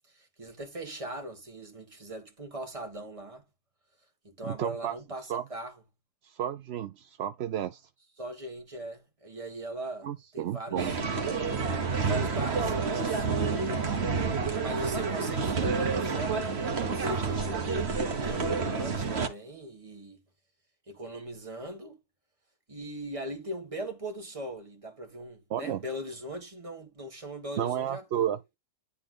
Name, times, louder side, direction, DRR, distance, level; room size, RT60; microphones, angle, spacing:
voice 1, 0.1-3.4 4.2-5.7 8.2-11.0 11.9-14.0 14.6-20.2 20.9-22.0 22.7-28.4, right 1 dB, 20° right, 1.8 m, -40 dB
voice 2, 4.4-5.0 5.3-5.4 6.2-7.9 10.0-10.9 25.5-25.8 27.6-28.5, right 10 dB, 65° right, 0.6 m, -32 dB
sound 1, 10.8-19.3, right 4 dB, 45° right, 1.5 m, -29 dB
10.0 x 3.6 x 3.7 m
omnidirectional pair, 1.6 m